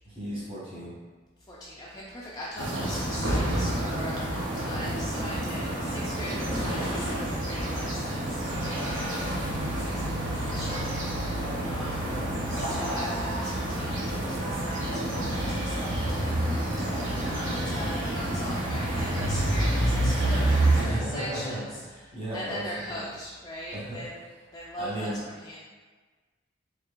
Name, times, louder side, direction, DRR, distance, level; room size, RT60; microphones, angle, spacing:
voice 1, 0.0-1.0 11.4-12.3 20.7-23.1 23.7-24.0 24.8-25.1, right 1 dB, 30° right, -8 dB, 1.2 m, -36 dB
voice 2, 1.5-12.0 12.5-21.8 22.3-24.1 24.5-25.6, equal, 20° left, -6 dB, 0.3 m, -41 dB
sound 1, 2.6-20.8, right 1 dB, 75° right, 0.9 m, -28 dB
4.3 x 2.8 x 2.5 m, 1.4 s
head